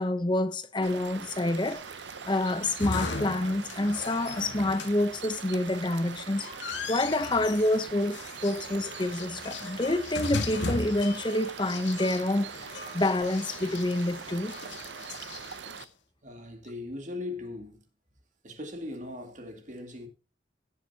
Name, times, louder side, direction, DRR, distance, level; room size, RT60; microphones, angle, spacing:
voice 1, 0.0-1.8 2.3-6.5 6.9-12.5 12.9-14.6, left 1 dB, 25° left, 0.8 m, -27 dB
sound 1, 0.8-15.8, right 7 dB, 75° right, 0.6 m, -43 dB
sound 2, 1.5-15.8, left 3 dB, 80° left, 1.6 m, -38 dB
voice 2, 16.2-17.8 18.4-20.1, left 2 dB, 45° right, 2.4 m, -39 dB
17.0 x 7.3 x 2.8 m
head